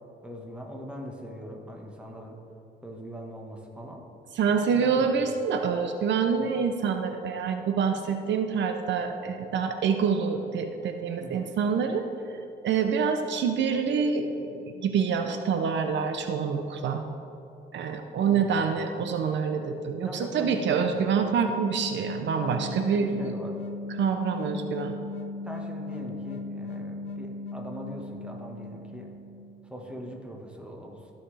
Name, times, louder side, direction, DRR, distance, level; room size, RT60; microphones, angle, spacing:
voice 1, 0.2-2.4 2.8-4.1 4.5-5.3 6.4-6.6 11.2-11.5 18.2-18.7 20.0-21.2 22.4-23.6 25.4-29.1 29.6-31.1, equal, 5° right, 0 dB, 1.4 m, -41 dB
voice 2, 4.3-12.1 12.6-17.0 17.7-23.2 24.0-24.9, right 6 dB, 65° right, 6 dB, 0.6 m, -26 dB
sound 1, 19.8-29.9, left 3 dB, 60° left, 0.6 m, -38 dB
14.5 x 5.7 x 3.3 m, 2.7 s
cardioid pair, 90°, 20 cm